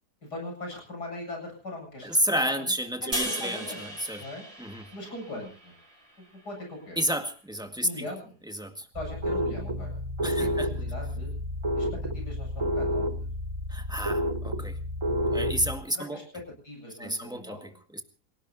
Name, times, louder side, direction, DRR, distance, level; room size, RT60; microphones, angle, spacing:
voice 1, 0.2-2.7 3.0-3.8 4.2-4.5 4.9-5.7 6.2-7.0 7.8-8.4 8.9-11.3 11.7-13.3 15.9-17.8, left 2 dB, 85° left, 2 dB, 8.8 m, -40 dB
voice 2, 2.0-4.2 4.6-4.8 7.0-8.1 8.5-8.9 10.2-10.7 13.7-14.8 15.3-16.2 17.0-18.0, right 1 dB, 5° right, 5 dB, 1.7 m, -31 dB
sound 1, 3.1-6.4, equal, 40° right, 5.0 m, -37 dB
sound 2, 8.9-15.8, equal, 20° right, 1.0 m, -30 dB
27.5 x 18.0 x 2.8 m, 0.36 s
omnidirectional pair, 1.7 m